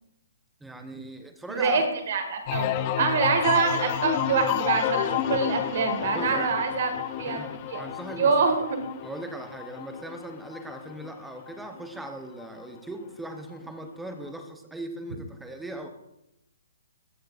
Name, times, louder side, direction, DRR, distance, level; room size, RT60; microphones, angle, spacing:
voice 1, 0.6-1.8 6.1-6.5 7.3-8.3 9.0-15.9, right 1 dB, 5° right, 5 dB, 0.7 m, -39 dB
voice 2, 1.5-6.9 7.2-7.4 7.7-7.8 8.2-8.6, right 5 dB, 55° right, 5 dB, 1.8 m, -25 dB
sound 1, 2.5-12.0 12.4-12.9, left 11 dB, 30° left, 0.5 m, -31 dB
14.5 x 6.6 x 2.5 m, 0.86 s
hypercardioid pair, 155°, 0 cm